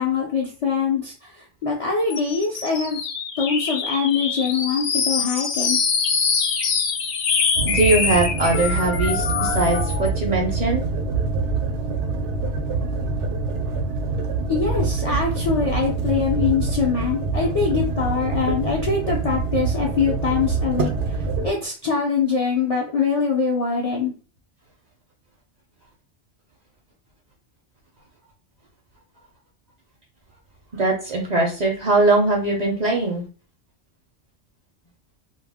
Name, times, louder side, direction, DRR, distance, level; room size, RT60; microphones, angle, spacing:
voice 1, 0.0-3.0 3.4-5.8 14.5-21.2 21.4-24.1, left 5 dB, 55° left, -2 dB, 0.4 m, -23 dB
sound 1, 2.1-10.1, left 5 dB, 70° left, 0.8 m, -24 dB
voice 2, 7.6-10.8 30.7-33.2, right 2 dB, 50° right, -1 dB, 0.6 m, -21 dB
sound 2, 7.6-21.5, right 3 dB, 85° right, 0.9 m, -25 dB
2.3 x 2.0 x 3.4 m, 0.37 s
omnidirectional pair, 1.2 m